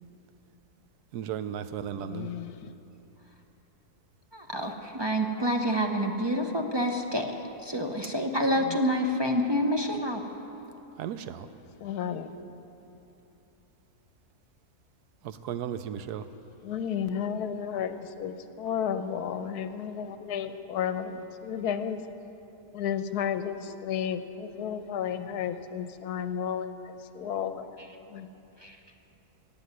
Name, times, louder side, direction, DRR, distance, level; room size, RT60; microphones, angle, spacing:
voice 1, 1.1-2.3 11.0-11.5 15.2-16.3, right 9 dB, 85° right, 11 dB, 1.2 m, -35 dB
voice 2, 2.0-2.7 8.6-8.8 11.8-12.3 16.6-22.0 22.7-27.7 28.1-28.3, left 8 dB, 80° left, 10 dB, 1.2 m, -33 dB
voice 3, 4.3-7.3 7.6-10.2 28.6-28.8, equal, 30° right, 3 dB, 0.5 m, -27 dB
15.5 x 7.6 x 9.5 m, 3.0 s
omnidirectional pair, 1.7 m